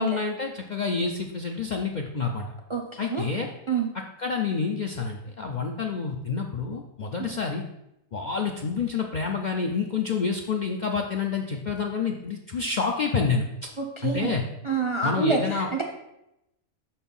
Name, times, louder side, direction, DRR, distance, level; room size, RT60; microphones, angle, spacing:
voice 1, 0.0-2.5 3.0-3.5 4.2-7.6 8.1-13.7 14.0-14.4 15.0-15.7, left 5 dB, 55° left, 2 dB, 0.5 m, -28 dB
voice 2, 2.7-3.3 3.7-3.9 7.2-7.3 13.8-14.4 14.6-15.8, right 4 dB, 40° right, 2 dB, 0.4 m, -27 dB
5.8 x 4.4 x 5.4 m, 0.86 s
omnidirectional pair, 1.4 m